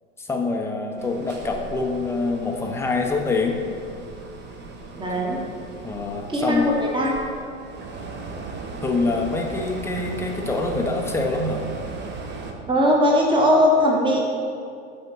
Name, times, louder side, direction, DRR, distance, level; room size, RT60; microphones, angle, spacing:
voice 1, 0.2-3.6 5.8-6.7 8.8-11.7, left 3 dB, 5° left, 2 dB, 0.6 m, -25 dB
sound 1, 1.0-12.5, right 3 dB, 30° right, 0.9 m, -37 dB
voice 2, 4.9-5.4 6.3-7.1 12.7-14.2, left 1 dB, 10° right, -1 dB, 1.2 m, -19 dB
6.6 x 4.3 x 6.0 m, 2.4 s
hypercardioid pair, 105°, 38 cm